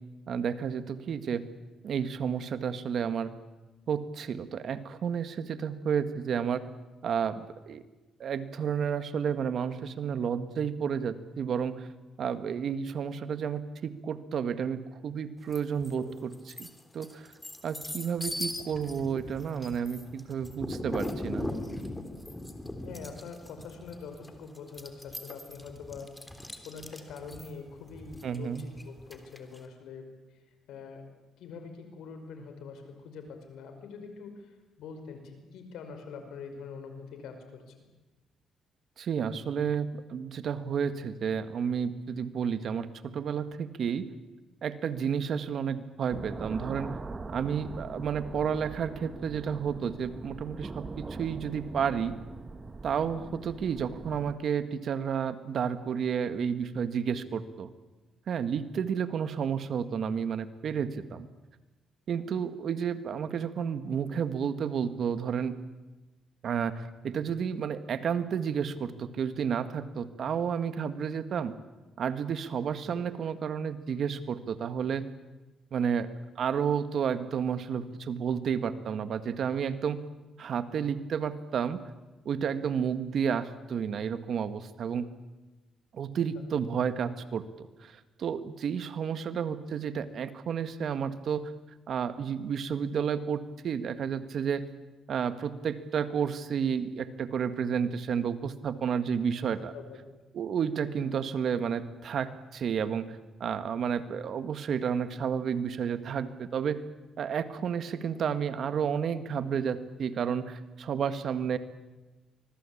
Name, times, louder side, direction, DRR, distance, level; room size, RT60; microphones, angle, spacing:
voice 1, 0.3-1.4 1.8-3.3 3.9-6.6 7.0-7.8 8.2-11.9 12.2-16.3 16.6-16.7 16.9-17.3 17.6-21.5 28.2-28.6 39.0-44.1 44.6-47.0 47.3-52.1 52.8-57.7 58.3-61.3 62.1-65.6 66.4-71.5 72.0-75.1 75.7-80.0 80.4-81.8 82.3-85.1 85.9-87.9 88.2-91.5 91.9-94.7 95.1-99.7 100.3-106.8 107.2-111.6, right 7 dB, 60° right, 11 dB, 1.8 m, -31 dB
sound 1, 15.5-15.9 16.3-29.6, left 1 dB, 10° left, 3.4 m, -39 dB
voice 2, 22.8-26.1 26.6-30.4 30.7-31.0 31.4-37.8 48.3-48.4 72.9-73.0 86.4-86.5 99.7-100.0, left 5 dB, 85° left, 7 dB, 5.3 m, -44 dB
sound 2, 46.1-54.4, right 3 dB, 30° right, 1.8 m, -42 dB
25.0 x 21.0 x 8.7 m, 1.1 s
cardioid pair, 90°, 0 cm